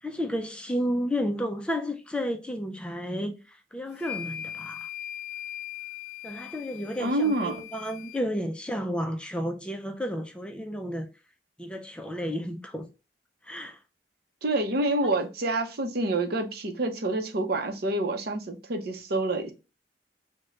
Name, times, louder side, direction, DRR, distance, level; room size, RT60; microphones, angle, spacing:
voice 1, 0.0-4.9 6.2-11.1 11.6-12.9 13.4-13.8, equal, 5° left, 0.4 m, -32 dB
sound 1, 3.9-8.2, left 11 dB, 65° left, 0.6 m, -40 dB
voice 2, 7.0-7.6 14.4-19.5, right 2 dB, 60° right, 0.7 m, -27 dB
3.2 x 2.1 x 3.6 m
head